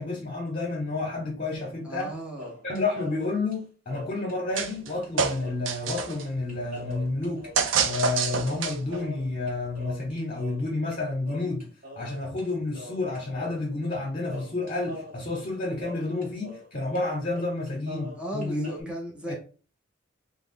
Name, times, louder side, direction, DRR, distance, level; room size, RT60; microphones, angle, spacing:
voice 1, 0.0-2.1 2.6-7.5 7.8-11.7 12.0-18.7 19.3-19.4, left 2 dB, 40° left, 0.8 m, -30 dB
sound 1, 1.5-2.1 2.4-4.8 5.0-5.1 5.4-11.0 11.3-12.5 12.7-14.0 14.3-16.7 16.9-17.0 17.3-18.8, left 2 dB, 45° right, 0.9 m, -43 dB
voice 2, 1.8-2.5 18.2-19.3, equal, 5° right, 0.6 m, -36 dB
sound 2, 4.6-4.9 5.2-6.2 7.6-9.0, right 6 dB, 75° right, 0.4 m, -27 dB
3.0 x 2.0 x 3.6 m
head